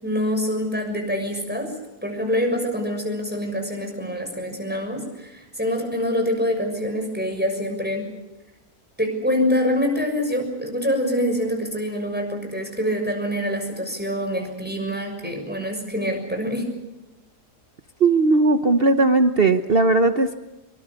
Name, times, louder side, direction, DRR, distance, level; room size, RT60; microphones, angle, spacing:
voice 1, 0.0-1.7 2.0-8.1 9.0-16.7, equal, 5° right, 3 dB, 6.6 m, -25 dB
voice 2, 18.0-20.4, right 3 dB, 40° right, 8 dB, 1.1 m, -18 dB
26.0 x 24.0 x 6.9 m, 0.98 s
omnidirectional pair, 1.7 m